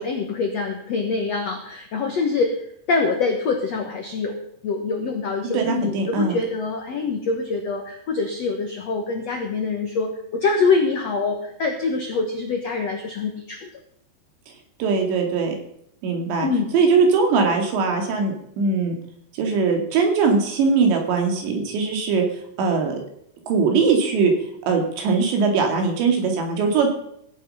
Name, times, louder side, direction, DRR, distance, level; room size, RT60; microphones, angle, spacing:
voice 1, 0.0-4.4 4.6-13.7 16.4-16.7, left 4 dB, 70° left, 3 dB, 1.5 m, -25 dB
voice 2, 5.5-6.4 14.8-15.6 16.0-16.5 16.7-19.0 19.3-22.2 22.6-23.0 23.5-24.3 24.7-26.9, right 4 dB, 80° right, 3 dB, 4.5 m, -20 dB
16.5 x 8.7 x 5.6 m, 0.72 s
omnidirectional pair, 5.1 m